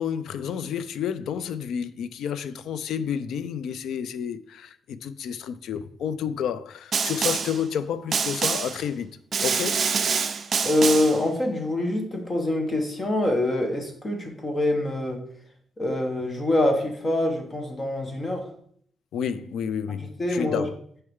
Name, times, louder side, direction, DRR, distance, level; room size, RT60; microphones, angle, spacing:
voice 1, 0.0-9.1 9.4-9.8 19.1-20.7, left 8 dB, 80° left, 0.4 m, -30 dB
Snare drum, 6.9-7.6 8.1-8.8 9.3-11.2, right 5 dB, 40° right, 0.4 m, -26 dB
voice 2, 10.6-15.2 15.8-18.4 20.2-20.6, left 1 dB, 20° left, 1.1 m, -25 dB
6.4 x 4.4 x 3.6 m
wide cardioid pair, 160°, 0 cm